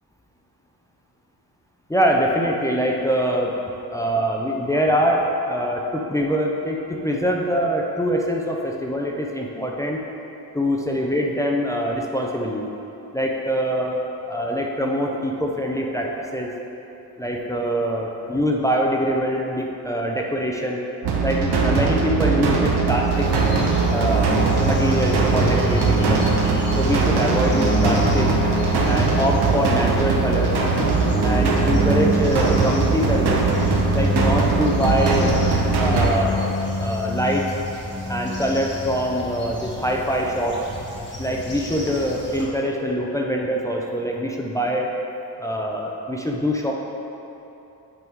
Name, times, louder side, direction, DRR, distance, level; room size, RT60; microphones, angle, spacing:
voice 1, 1.9-3.5 3.9-10.0 10.5-12.7 13.1-16.5 17.2-20.9 21.2-23.3 23.9-24.3 24.6-26.4 26.8-28.3 28.9-30.6 31.2-33.4 33.9-35.3 35.8-36.5 36.8-37.5 38.1-40.6 41.2-44.9 45.4-46.7, equal, 10° left, -1 dB, 0.4 m, -24 dB
sound 1, 21.0-36.1, right 5 dB, 85° right, 1.0 m, -21 dB
sound 2, 23.1-42.4, left 1 dB, 30° left, 1.1 m, -27 dB
8.1 x 3.6 x 4.6 m, 3.0 s
wide cardioid pair, 155°, 39 cm